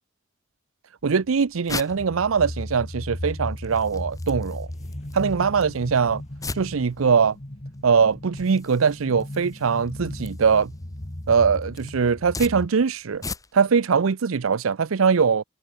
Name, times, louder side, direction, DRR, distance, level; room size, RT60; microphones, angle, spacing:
sound 1, 1.0-13.8, left 3 dB, 15° left, 2.2 m, -41 dB
voice 1, 1.0-4.7 5.1-6.2 6.6-7.4 7.8-10.7 11.3-13.2 13.5-15.4, right 6 dB, 85° right, 0.6 m, -21 dB
sound 2, 1.9-12.7, left 1 dB, 30° left, 1.7 m, -36 dB
head